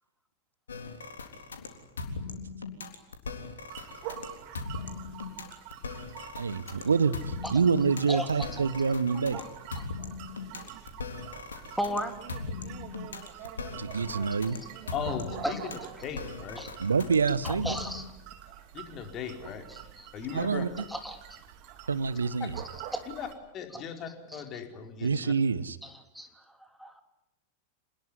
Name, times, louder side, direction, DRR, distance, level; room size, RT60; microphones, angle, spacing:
sound 1, 0.7-18.1, left 4 dB, 70° left, 3.6 m, -39 dB
sound 2, 3.7-23.3, right 11 dB, 45° right, 3.2 m, -46 dB
voice 1, 6.4-9.4 13.8-14.6 16.8-17.8 20.3-20.7 21.9-22.6 25.0-25.8, right 5 dB, 75° right, 18 dB, 1.0 m, -27 dB
voice 2, 8.1-8.5 9.3-9.4 9.8-9.9 11.8-12.1 15.4-15.6 16.6-16.7 17.4-18.0 20.0-20.1 20.9-21.2 22.9-23.0 23.7-23.8 25.8-26.3 26.8-27.0, equal, ahead, 6 dB, 3.4 m, -34 dB
voice 3, 14.9-16.6 18.7-19.6 20.1-20.7 22.4-22.5 23.1-23.3 23.5-25.3, left 7 dB, 30° left, 5 dB, 4.4 m, -38 dB
27.5 x 20.5 x 10.0 m, 0.86 s
figure-of-eight pair, 90°, 0 cm